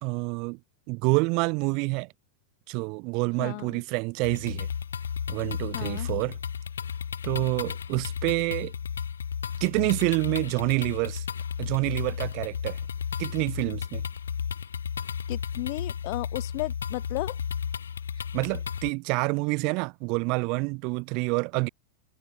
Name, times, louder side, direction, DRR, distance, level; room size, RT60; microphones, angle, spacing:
voice 1, 0.0-0.6 0.9-2.1 2.7-4.7 5.3-6.4 7.2-8.7 9.6-11.2 11.6-12.8 13.2-14.0 18.3-21.7, right 30 dB, 45° right, 0.4 m, -27 dB
voice 2, 3.4-3.8 5.7-6.1 15.3-17.4, left 35 dB, 45° left, 0.5 m, -34 dB
sound 1, 4.2-18.9, left 7 dB, 70° left, 1.6 m, -33 dB
figure-of-eight pair, 90°, 0 cm